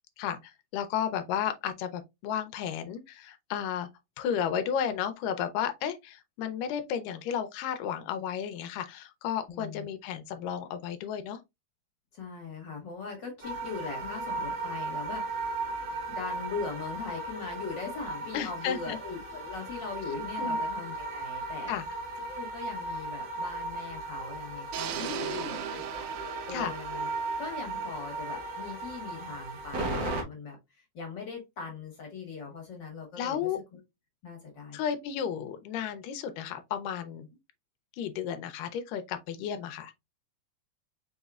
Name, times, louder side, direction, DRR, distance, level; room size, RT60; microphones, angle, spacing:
voice 1, 0.2-3.9 4.2-11.4 18.3-19.0 20.4-20.6 21.7-21.8 25.0-25.6 26.5-26.7 33.2-33.6 34.7-37.3 38.0-39.9, left 8 dB, 85° left, 2.3 m, -33 dB
voice 2, 9.5-9.9 12.1-15.6 16.1-21.7 22.2-33.5 34.2-34.8, left 4 dB, 45° left, 1.6 m, -40 dB
sound 1, 13.4-30.2, right 2 dB, 50° right, 1.4 m, -36 dB
sound 2, 24.7-28.8, right 9 dB, 75° right, 2.1 m, -39 dB
5.5 x 4.1 x 2.3 m
omnidirectional pair, 3.7 m